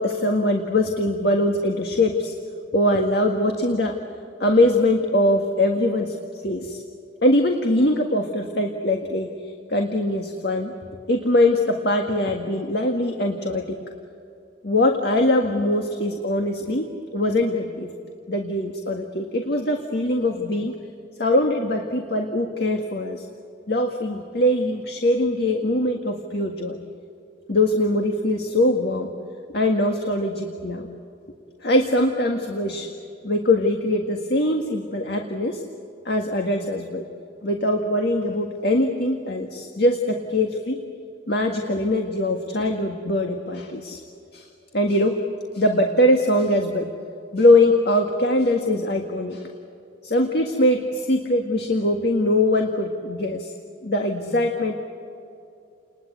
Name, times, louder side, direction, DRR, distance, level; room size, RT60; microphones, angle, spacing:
voice 1, 0.0-2.4 2.7-4.0 4.4-6.2 6.4-6.8 7.2-9.3 9.7-10.7 11.1-13.8 14.6-17.9 18.3-20.8 21.2-23.2 23.7-26.8 27.5-29.1 29.5-30.9 31.6-32.9 33.2-35.6 36.1-37.1 37.4-40.8 41.3-44.0 44.3-44.5 44.7-45.2 45.5-46.9 47.3-49.5 50.0-53.5 53.8-54.7, left 1 dB, 60° left, 3 dB, 1.8 m, -22 dB
30.0 x 21.0 x 8.3 m, 2.5 s
head